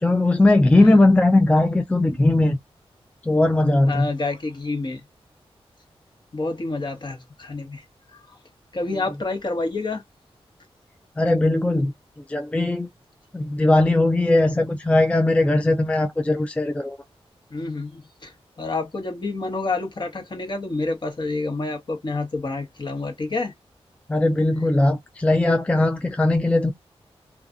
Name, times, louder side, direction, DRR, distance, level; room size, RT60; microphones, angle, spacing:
voice 1, 0.0-2.6 3.2-4.1 11.2-11.9 12.3-12.9 13.3-17.0 24.1-26.7, left 2 dB, 10° left, 0.3 m, -19 dB
voice 2, 3.9-5.0 6.3-7.8 8.1-8.2 8.7-10.0 17.5-23.5, left 3 dB, 45° left, 1.1 m, -28 dB
2.5 x 2.3 x 2.5 m
wide cardioid pair, 75°, 11 cm